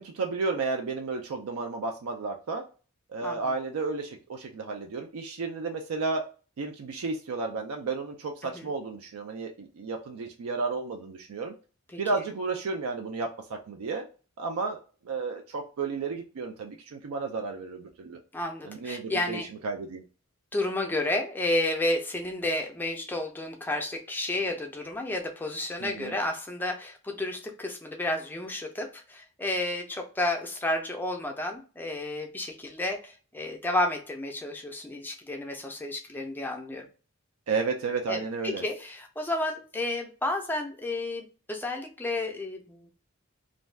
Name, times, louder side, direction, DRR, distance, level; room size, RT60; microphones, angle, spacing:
voice 1, 0.0-2.6 3.1-6.2 6.6-11.5 12.0-14.1 14.4-18.2 18.6-20.0 25.8-26.1 37.5-38.6, right 4 dB, 85° right, 3 dB, 0.4 m, -32 dB
voice 2, 18.3-19.5 20.5-36.9 38.1-42.9, left 2 dB, 10° left, 3 dB, 0.4 m, -31 dB
2.5 x 2.2 x 3.2 m, 0.36 s
head